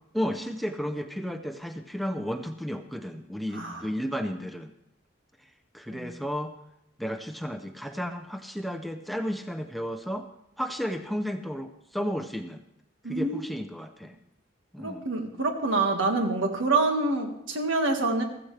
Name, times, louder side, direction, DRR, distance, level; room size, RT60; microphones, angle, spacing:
voice 1, 0.1-4.7 5.7-6.5 7.0-10.3 10.6-12.6 13.1-14.2 14.7-15.1, equal, ahead, 6 dB, 0.5 m, -33 dB
voice 2, 13.0-13.5 14.8-18.2, right 3 dB, 75° right, 4 dB, 1.7 m, -26 dB
15.0 x 14.0 x 3.3 m, 0.81 s
head